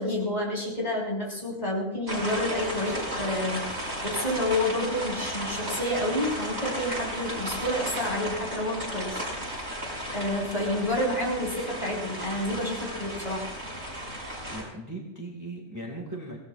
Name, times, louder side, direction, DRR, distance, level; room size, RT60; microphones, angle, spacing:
voice 1, 0.0-9.2 10.1-13.5, left 1 dB, 35° left, -4 dB, 6.0 m, -29 dB
sound 1, 2.1-14.6, equal, 60° right, 6.2 m, -34 dB
voice 2, 14.5-16.4, right 1 dB, 15° right, 0 dB, 2.0 m, -38 dB
24.5 x 18.0 x 2.5 m, 0.95 s
omnidirectional pair, 1.3 m